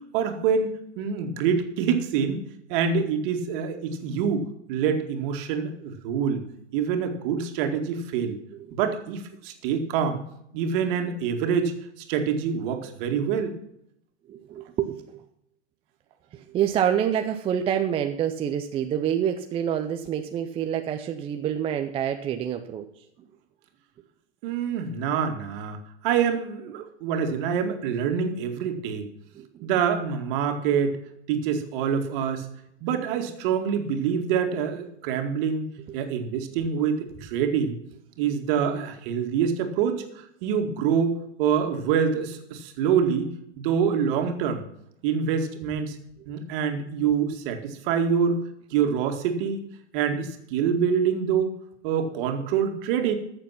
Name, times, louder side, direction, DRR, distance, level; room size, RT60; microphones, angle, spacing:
voice 1, 0.1-2.4 2.7-6.4 6.7-8.4 8.7-10.2 10.5-11.7 12.1-13.5 24.4-29.1 29.6-30.9 31.3-32.5 32.8-35.7 35.9-37.8 38.2-44.6 45.0-46.0 46.3-48.4 48.7-49.6 49.9-51.6 51.8-53.2, right 7 dB, 45° right, 5 dB, 2.2 m, -26 dB
voice 2, 14.3-15.2 16.3-22.8 29.4-29.7, right 9 dB, 15° right, 6 dB, 0.5 m, -27 dB
14.0 x 6.9 x 5.9 m, 0.75 s
hypercardioid pair, 130°, 37 cm